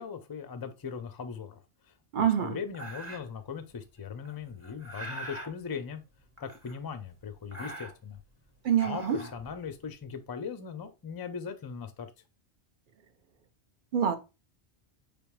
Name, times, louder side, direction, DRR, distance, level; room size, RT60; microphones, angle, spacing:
voice 1, 0.0-6.0 6.4-8.2 8.8-12.1, left 6 dB, 35° left, 0.4 m, -39 dB
voice 2, 2.1-2.6 8.6-9.2 13.9-14.2, right 8 dB, 55° right, 0.7 m, -26 dB
sound 1, 2.7-3.4 4.2-5.5 6.4-7.0 7.3-8.2 8.7-9.9, right 1 dB, 15° right, 1.0 m, -42 dB
4.9 x 3.4 x 3.0 m
omnidirectional pair, 1.2 m